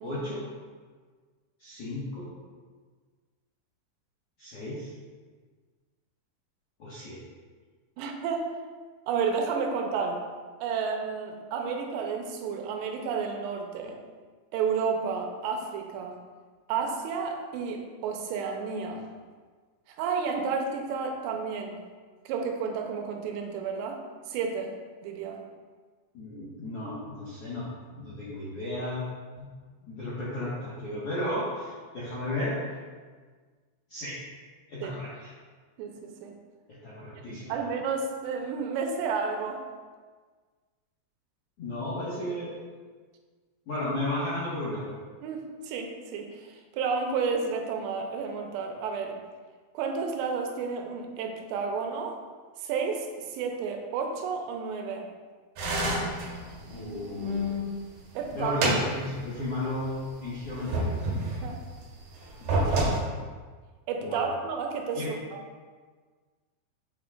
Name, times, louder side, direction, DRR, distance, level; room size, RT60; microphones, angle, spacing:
voice 1, 0.0-0.5 1.6-2.3 4.4-4.9 6.8-7.2 26.1-27.7 27.9-29.0 29.4-29.5 29.8-32.6 33.9-34.1 34.7-35.3 36.7-37.6 41.6-42.5 43.7-44.9 56.7-57.6 58.3-61.0 62.4-62.8 63.1-63.2 64.0-64.3 64.9-65.1, left 1 dB, 65° left, -10 dB, 1.4 m, -34 dB
voice 2, 8.0-8.5 9.1-10.2 10.6-14.0 14.5-16.2 16.7-19.0 19.9-21.8 22.3-24.0 24.3-24.7 25.0-25.4 34.8-34.9 35.8-36.4 37.3-39.6 45.2-49.2 49.7-52.2 52.6-55.1 58.1-58.6 61.4-61.6 63.9-65.2, right 5 dB, 85° right, 3 dB, 2.9 m, -31 dB
sound 1, 55.6-57.7 58.1-59.5 59.8-59.9 60.4-61.6 62.3-63.0, right 1 dB, 60° right, 3.3 m, -29 dB
7.4 x 7.4 x 2.4 m, 1.5 s
omnidirectional pair, 5.0 m